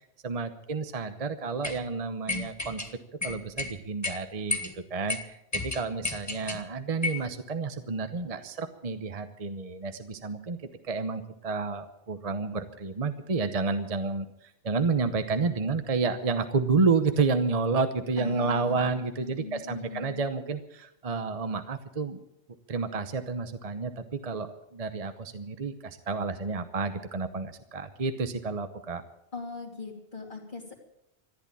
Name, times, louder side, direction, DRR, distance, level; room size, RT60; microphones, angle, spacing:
voice 1, 0.2-2.8 3.2-4.6 4.9-10.6 10.8-14.3 14.6-22.2 22.7-29.0, right 4 dB, 35° right, 9 dB, 0.9 m, -30 dB
sound 1, 1.6-1.8 2.3-2.9 3.2-3.7 4.0-4.2 4.5-4.7 5.1-5.2 5.5-6.6 7.0-7.3, left 3 dB, 15° left, 1.3 m, -31 dB
voice 2, 18.2-20.2 29.3-30.8, left 4 dB, 45° left, -2 dB, 2.9 m, -40 dB
14.5 x 11.0 x 8.7 m, 0.81 s
omnidirectional pair, 1.1 m